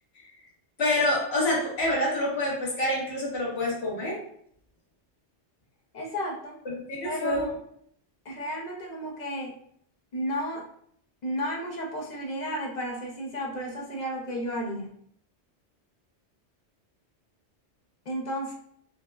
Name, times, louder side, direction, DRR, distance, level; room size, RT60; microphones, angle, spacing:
voice 1, 0.8-4.2 6.6-7.5, left 1 dB, 65° left, -5 dB, 1.3 m, -27 dB
voice 2, 5.9-6.6 7.0-7.6 8.3-9.5 10.1-10.7 11.2-14.9 18.1-18.5, equal, 45° left, -2 dB, 0.6 m, -32 dB
4.4 x 2.0 x 2.2 m, 0.66 s
omnidirectional pair, 1.2 m